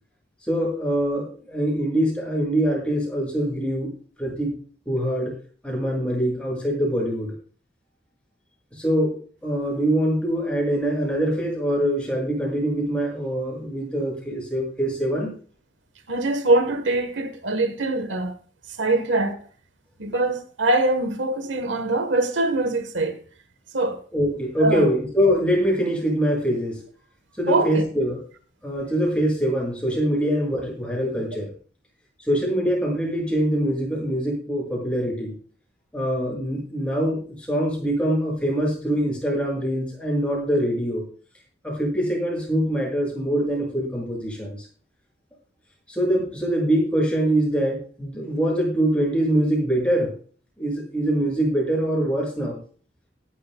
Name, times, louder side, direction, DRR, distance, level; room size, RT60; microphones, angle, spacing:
voice 1, 0.5-3.9 4.2-4.6 4.8-5.3 5.6-7.3 8.7-15.3 24.1-26.8 27.4-28.2 28.6-31.5 32.3-35.4 35.9-41.0 41.6-44.6 45.9-50.1 50.6-52.6, equal, 5° left, 7.0 m, -24 dB
voice 2, 16.1-18.3 18.8-19.4 20.0-23.2 23.7-24.0 24.6-24.9 27.5-27.8, right 2 dB, 90° right, 1.3 m, -23 dB
18.0 x 11.5 x 2.3 m
head